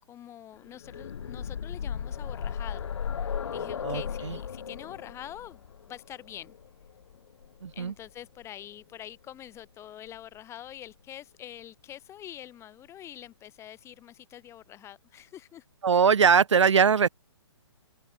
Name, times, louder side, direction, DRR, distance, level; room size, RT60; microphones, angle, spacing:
voice 1, 0.0-2.9 3.2-5.6 5.9-6.6 7.7-15.6, left 11 dB, 20° left, 5.1 m, -45 dB
sound 1, 0.6-8.4 9.6-9.7 10.1-10.2, left 7 dB, 75° left, 0.4 m, -36 dB
voice 2, 3.8-4.4 7.6-7.9 15.8-17.1, right 6 dB, 80° right, 0.5 m, -21 dB
figure-of-eight pair, 135°, 15 cm